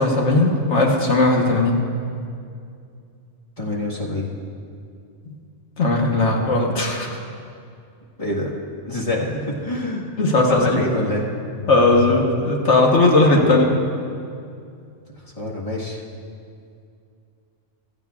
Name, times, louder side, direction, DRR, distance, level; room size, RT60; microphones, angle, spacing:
voice 1, 0.0-1.8 5.8-7.2 10.2-10.8 11.6-13.7, left 2 dB, 65° left, 0 dB, 1.5 m, -17 dB
voice 2, 3.6-4.3 8.2-8.5 8.8-10.1 10.5-11.2 15.2-16.0, left 1 dB, 30° left, -4 dB, 1.6 m, -26 dB
16.0 x 13.5 x 2.4 m, 2.4 s
omnidirectional pair, 1.3 m